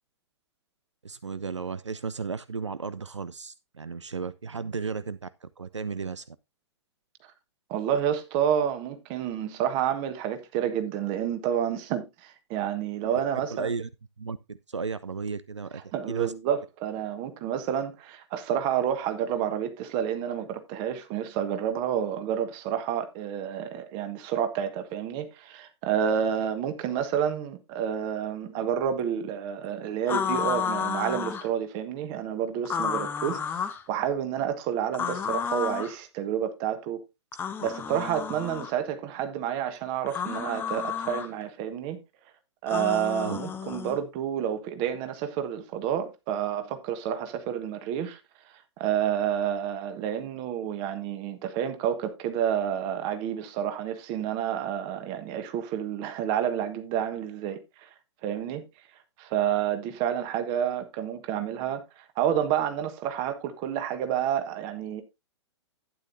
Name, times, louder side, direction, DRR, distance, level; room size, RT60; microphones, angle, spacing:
voice 1, 1.0-6.4 13.3-13.9 14.2-15.8 16.1-16.3 43.2-43.4, right 5 dB, 80° right, 0.4 m, -34 dB
voice 2, 7.7-13.7 15.9-37.0 37.6-42.0 42.6-48.2 48.8-57.9 58.2-58.6 59.2-65.0, right 9 dB, 30° right, 1.4 m, -29 dB
sound 1, 30.1-31.5 32.6-33.8 34.9-35.9 37.3-38.7 40.1-41.3 42.7-44.0, left 7 dB, 15° left, 0.8 m, -31 dB
11.5 x 9.3 x 2.6 m
figure-of-eight pair, 110°, 15 cm